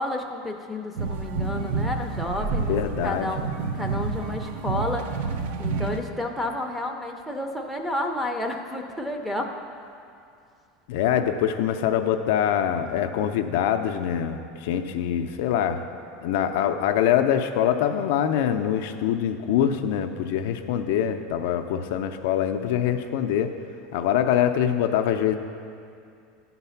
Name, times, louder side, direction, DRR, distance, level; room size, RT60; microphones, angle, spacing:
voice 1, 0.0-2.8 3.0-3.5 3.7-5.1 5.6-9.6, left 1 dB, ahead, 0 dB, 0.5 m, -30 dB
sound 1, 1.0-6.0, right 4 dB, 75° right, 0.5 m, -29 dB
voice 2, 2.7-3.3 10.9-15.8 16.2-23.5 23.9-25.4, left 9 dB, 65° left, 7 dB, 0.4 m, -24 dB
10.5 x 4.0 x 5.7 m, 2.4 s
supercardioid pair, 165°, 0 cm